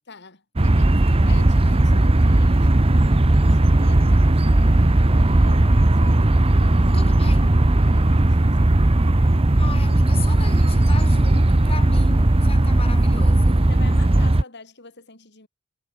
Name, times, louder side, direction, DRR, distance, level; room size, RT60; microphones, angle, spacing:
voice 1, 0.1-7.1 7.9-8.8 13.7-15.5, left 3 dB, 50° left, 3.9 m, -44 dB
sound 1, 0.6-14.4, right 1 dB, 25° right, 0.8 m, -17 dB
voice 2, 6.9-7.6 9.6-13.8, left 3 dB, 25° left, 4.0 m, -36 dB
head